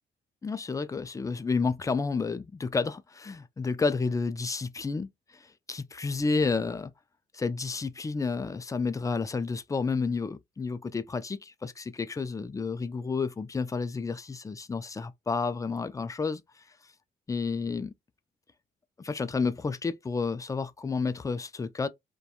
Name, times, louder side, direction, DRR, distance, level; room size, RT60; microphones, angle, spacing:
voice 1, 0.4-5.1 5.7-6.9 7.3-16.4 17.3-17.9 19.0-21.9, left 4 dB, 15° left, 0.3 m, -30 dB
2.8 x 2.2 x 2.3 m
cardioid pair, 90°, 20 cm